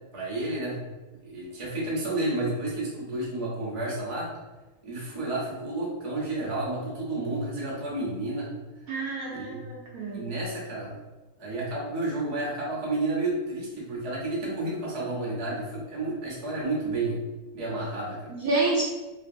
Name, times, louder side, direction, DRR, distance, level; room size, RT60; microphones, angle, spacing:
voice 1, 0.1-0.8 1.2-4.3 4.8-8.5 9.3-9.6 10.1-11.0 11.4-17.2 17.5-18.3, right 2 dB, 35° right, -6 dB, 0.5 m, -31 dB
voice 2, 8.9-10.2 18.3-18.8, right 2 dB, 70° right, -4 dB, 0.9 m, -28 dB
2.9 x 2.6 x 2.5 m, 1.2 s
omnidirectional pair, 1.8 m